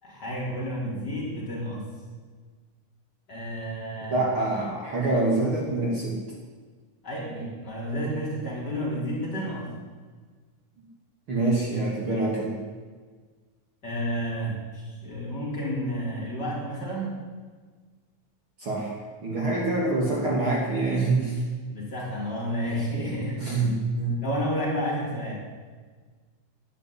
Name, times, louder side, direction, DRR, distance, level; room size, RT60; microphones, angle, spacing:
voice 1, 0.0-1.8 3.3-4.3 7.0-9.7 13.8-17.1 21.7-23.8 24.2-25.4, equal, 30° left, -5 dB, 4.5 m, -31 dB
voice 2, 4.1-6.2 11.3-12.6 18.6-18.9 19.2-21.4 23.4-24.2, right 2 dB, 40° right, -3 dB, 3.0 m, -25 dB
12.0 x 11.0 x 10.0 m, 1.5 s
omnidirectional pair, 4.0 m